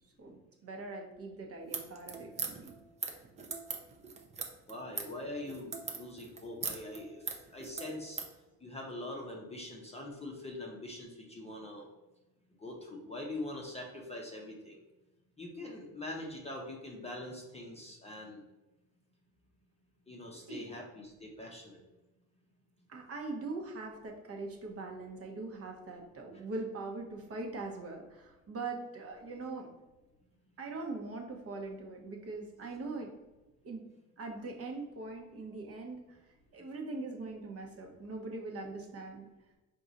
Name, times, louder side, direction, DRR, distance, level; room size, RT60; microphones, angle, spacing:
voice 1, 0.2-2.7 20.3-20.7 22.9-29.7 30.6-33.1 33.6-33.8 34.2-36.2 36.5-39.3, right 3 dB, 35° right, 1 dB, 0.9 m, -42 dB
sound 1, 1.6-8.3, right 5 dB, 15° right, 0.5 m, -40 dB
voice 2, 4.7-7.2 7.5-8.2 8.6-11.9 12.6-14.8 15.4-18.4 20.1-21.8, left 1 dB, 15° left, -1 dB, 0.8 m, -43 dB
4.7 x 2.6 x 4.0 m, 1.1 s
supercardioid pair, 110°, 43 cm